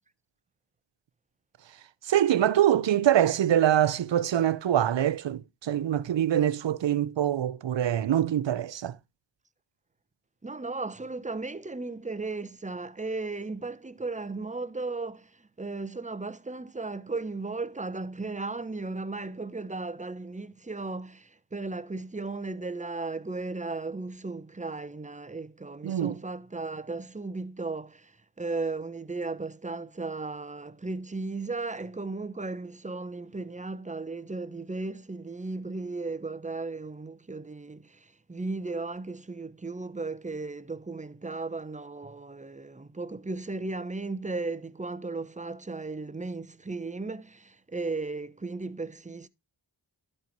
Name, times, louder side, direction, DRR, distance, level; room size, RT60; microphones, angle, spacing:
voice 1, 2.1-9.0 25.8-26.2, right 11 dB, 70° right, 0.7 m, -24 dB
voice 2, 10.4-49.3, right 3 dB, 15° right, 0.8 m, -35 dB
12.0 x 4.4 x 4.6 m
cardioid pair, 45°, 46 cm